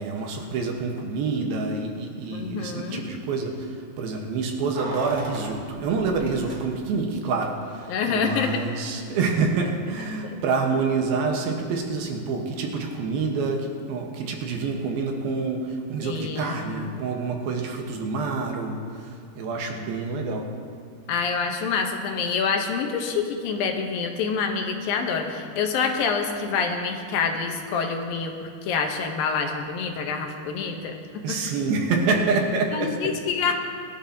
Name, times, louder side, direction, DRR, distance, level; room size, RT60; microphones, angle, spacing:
voice 1, 0.0-20.5 31.2-33.1 33.5-33.6, right 4 dB, 75° right, 2 dB, 3.0 m, -27 dB
voice 2, 2.3-3.1 7.9-8.6 10.2-10.4 16.0-16.9 21.1-31.5 32.7-33.5, left 5 dB, 75° left, 3 dB, 2.6 m, -27 dB
Keys jangling, 4.7-7.1 7.4-7.5, right 2 dB, 50° right, 2.0 m, -37 dB
22.5 x 12.0 x 2.8 m, 2.2 s
omnidirectional pair, 4.4 m